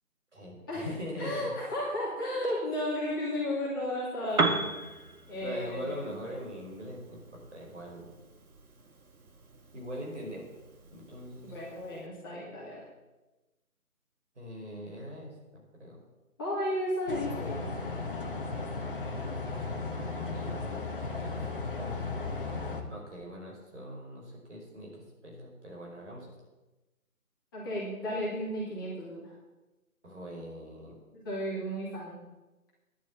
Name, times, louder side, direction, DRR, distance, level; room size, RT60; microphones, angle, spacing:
voice 1, 0.3-1.5 5.4-8.2 9.7-10.4 10.9-11.5 14.3-16.0 20.1-21.4 21.7-22.2 22.9-26.3 30.0-30.9, equal, 50° right, -2 dB, 5.1 m, -42 dB
voice 2, 1.2-4.7 5.3-6.2 11.4-12.8 16.4-17.6 17.8-18.0 27.5-29.3 31.1-32.2, left 1 dB, 15° left, -8 dB, 2.6 m, -34 dB
Piano, 4.3-12.1, right 3 dB, 70° right, 1.7 m, -37 dB
sound 1, 17.1-22.8, left 3 dB, 35° left, 1.4 m, -35 dB
11.0 x 7.5 x 9.0 m, 1.1 s
figure-of-eight pair, 170°, 45 cm